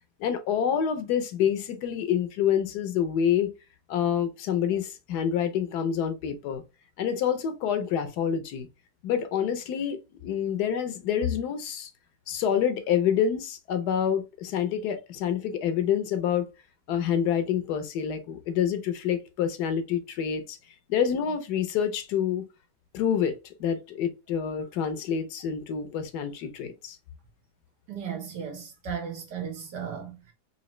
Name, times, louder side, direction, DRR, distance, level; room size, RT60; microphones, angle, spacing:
voice 1, 0.2-3.5 3.9-6.6 7.0-8.7 9.0-11.9 12.3-16.5 16.9-20.6 20.9-22.4 22.9-27.0, left 8 dB, 75° left, 1.2 m, -27 dB
voice 2, 27.9-30.3, right 7 dB, 85° right, 1.8 m, -36 dB
4.0 x 2.7 x 3.1 m
omnidirectional pair, 1.8 m